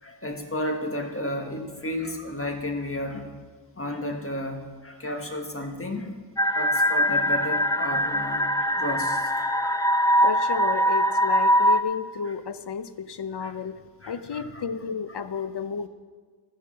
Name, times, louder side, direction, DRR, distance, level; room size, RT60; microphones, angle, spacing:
voice 1, 0.0-3.3 3.7-6.1 6.5-10.3 13.4-13.5 14.0-14.6, left 1 dB, 30° left, 3 dB, 1.6 m, -33 dB
sound 1, 6.4-11.8, equal, 10° left, 0.6 m, -22 dB
voice 2, 10.2-13.8 14.1-15.9, left 6 dB, 65° left, 12 dB, 0.7 m, -32 dB
13.5 x 8.3 x 6.3 m, 1.5 s
wide cardioid pair, 65°, 43 cm